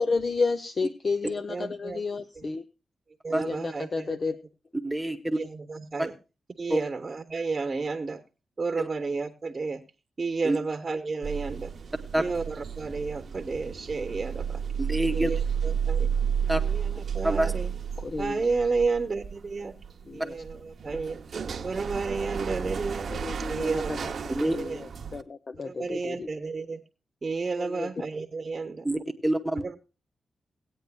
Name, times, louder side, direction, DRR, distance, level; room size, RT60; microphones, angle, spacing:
voice 1, 0.0-2.6 3.3-4.4 18.0-18.4 20.1-20.4 23.1-26.3 27.6-27.9, left 4 dB, 45° left, 11 dB, 0.5 m, -31 dB
voice 2, 1.5-2.0 3.2-4.3 5.3-6.1 6.6-8.2 8.6-9.8 10.2-11.7 12.2-14.6 15.1-16.1 16.6-17.7 18.2-19.7 20.1-20.6 20.8-21.2 21.6-23.1 23.5-24.8 25.6-26.8 27.2-28.9 29.6-29.8, right 4 dB, 40° right, 7 dB, 0.9 m, -31 dB
voice 3, 4.8-5.4 6.0-6.1 6.7-6.8 8.8-8.9 10.4-10.6 12.1-12.2 14.8-15.3 16.5-16.6 17.2-17.5 24.3-24.6 28.8-29.6, right 1 dB, 10° right, 6 dB, 1.0 m, -26 dB
sound 1, 11.2-25.2, right 7 dB, 60° right, 0.8 m, -32 dB
18.5 x 9.0 x 2.2 m, 0.30 s
cardioid pair, 90°, 0 cm